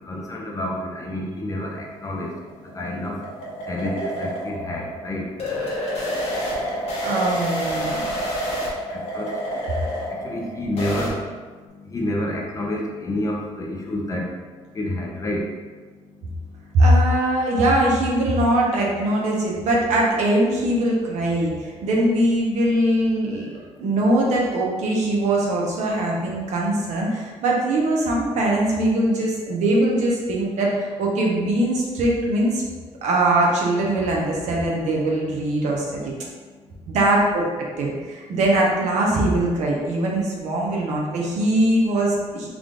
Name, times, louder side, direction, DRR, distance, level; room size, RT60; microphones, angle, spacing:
voice 1, 0.0-7.1 8.1-16.8 21.7-21.9 23.4-23.9, left 1 dB, 25° left, -1 dB, 0.6 m, -31 dB
sound 1, 2.1-11.1, equal, 65° left, 1.0 m, -28 dB
voice 2, 7.0-8.0 10.4-10.5 16.7-23.5 23.8-32.6 33.0-36.1 36.9-37.4 37.8-42.5, right 1 dB, 75° right, -3 dB, 0.9 m, -21 dB
3.6 x 2.5 x 3.6 m, 1.4 s
cardioid pair, 120°, 12 cm